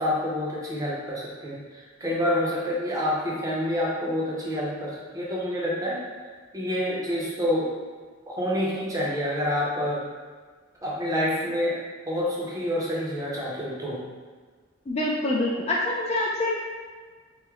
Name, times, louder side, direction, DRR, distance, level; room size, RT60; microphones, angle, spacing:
voice 1, 0.0-6.0 6.5-7.8 8.3-10.1 10.8-14.0, left 1 dB, 15° right, -5 dB, 0.6 m, -28 dB
voice 2, 14.9-16.5, left 1 dB, 30° left, -2 dB, 0.3 m, -25 dB
3.0 x 2.0 x 3.5 m, 1.5 s
head